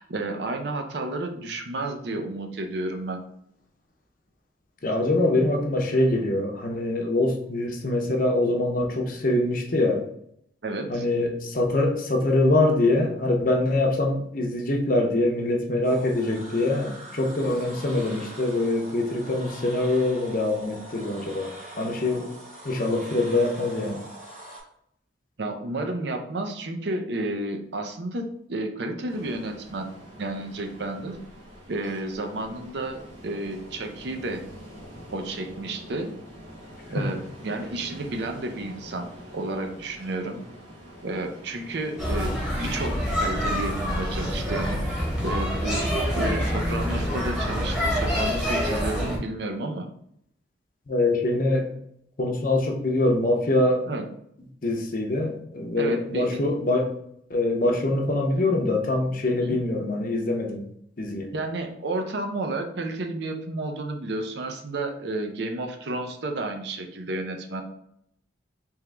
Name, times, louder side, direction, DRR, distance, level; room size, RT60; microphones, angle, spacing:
voice 1, 0.0-3.2 10.6-11.1 25.4-29.9 30.2-31.2 31.7-34.4 35.1-36.1 36.9-39.1 39.3-40.4 41.0-45.9 46.1-49.9 53.9-54.0 55.8-56.4 59.4-59.6 61.3-67.6, right 2 dB, 60° right, 4 dB, 0.5 m, -31 dB
voice 2, 4.8-10.0 10.9-22.3 22.6-24.0 50.9-51.7 52.2-53.8 54.6-56.9 57.3-60.7 61.0-61.3, left 2 dB, 45° left, 2 dB, 0.6 m, -24 dB
sound 1, 15.8-24.6, right 2 dB, 35° right, 1.2 m, -43 dB
Ocean, 29.1-48.2, equal, 75° right, 1.4 m, -45 dB
sound 2, 42.0-49.2, equal, 5° right, 0.9 m, -26 dB
3.5 x 2.9 x 3.3 m, 0.71 s
head